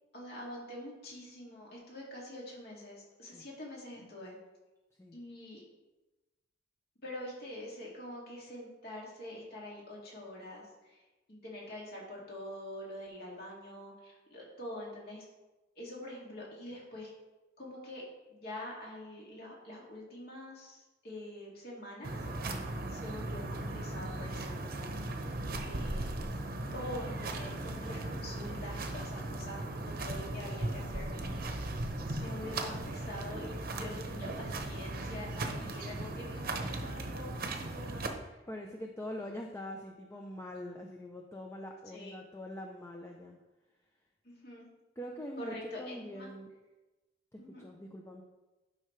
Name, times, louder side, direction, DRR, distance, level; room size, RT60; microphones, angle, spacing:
voice 1, 0.1-4.4 5.1-5.6 7.0-11.0 11.3-15.2 15.8-17.1 17.6-18.0 18.3-22.1 22.9-25.2 25.6-26.1 26.7-31.3 32.1-38.4 41.9-42.1 44.2-44.7 45.4-46.3 47.4-47.7, left 1 dB, 55° left, -4 dB, 2.4 m, -45 dB
sound 1, 22.0-38.1, right 2 dB, 50° right, 0.9 m, -37 dB
voice 2, 38.5-43.4 45.0-46.5 47.3-48.2, left 1 dB, 15° left, 1 dB, 0.6 m, -44 dB
11.0 x 5.5 x 3.3 m, 1.1 s
head